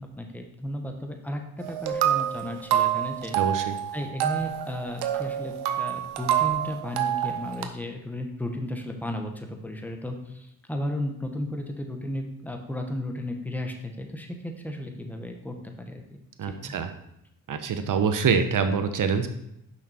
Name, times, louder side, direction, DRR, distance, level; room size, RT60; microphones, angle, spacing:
voice 1, 0.0-3.4 3.9-16.7, left 1 dB, 5° left, 3 dB, 1.4 m, -34 dB
sound 1, 1.6-7.7, right 11 dB, 75° right, 0.8 m, -27 dB
voice 2, 3.3-3.7 16.4-16.9 17.5-19.3, right 6 dB, 50° right, 8 dB, 1.0 m, -25 dB
6.5 x 5.8 x 4.4 m, 0.80 s
supercardioid pair, 50°, 40 cm